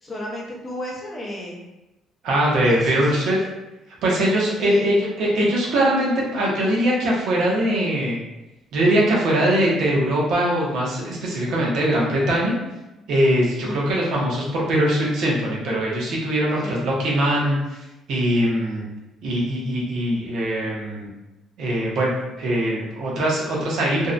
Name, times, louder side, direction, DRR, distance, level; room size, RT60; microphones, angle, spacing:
voice 1, 0.0-1.6 2.6-3.5 4.7-4.9 13.0-13.1 13.6-13.8 16.6-16.8, left 1 dB, 25° left, -3 dB, 0.6 m, -32 dB
voice 2, 2.2-3.4 4.0-8.2 8.7-12.5 13.1-17.6 18.1-18.8 19.2-21.1 21.6-24.1, right 1 dB, 65° right, -4 dB, 0.7 m, -21 dB
2.6 x 2.1 x 2.4 m, 1.0 s
cardioid pair, 145°, 0 cm